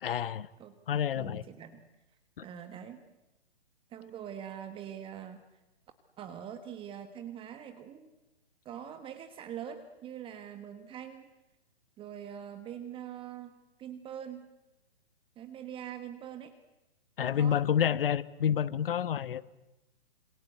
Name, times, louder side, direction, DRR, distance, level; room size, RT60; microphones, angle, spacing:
voice 1, 0.0-0.5 0.9-1.4 2.4-2.5 17.2-19.4, left 9 dB, 55° left, 17 dB, 1.3 m, -29 dB
voice 2, 1.1-1.8 2.4-3.0 3.9-5.4 6.2-8.1 8.6-11.3 12.0-13.5 13.8-14.5 15.4-16.5 17.2-17.6, right 9 dB, 15° right, 9 dB, 1.4 m, -43 dB
27.5 x 26.5 x 8.0 m, 0.96 s
hypercardioid pair, 140°, 33 cm